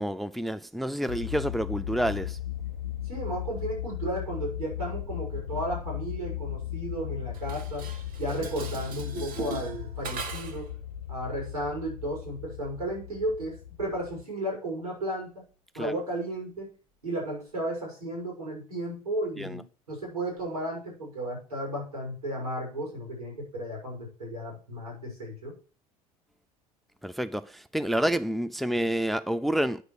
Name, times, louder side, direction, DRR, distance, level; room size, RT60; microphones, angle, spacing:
voice 1, 0.0-2.4 15.7-15.9 19.4-19.6 27.0-29.8, equal, ahead, 0.6 m, -29 dB
sound 1, 1.1-14.2, left 11 dB, 85° left, 0.5 m, -37 dB
voice 2, 3.1-7.9 8.2-10.7 11.1-15.4 15.7-16.7 17.0-25.6, right 1 dB, 90° right, 6.1 m, -34 dB
Dishes pots and pans, 7.3-10.7, right 4 dB, 50° right, 1.7 m, -39 dB
9.4 x 6.5 x 6.5 m
figure-of-eight pair, 65°, 19 cm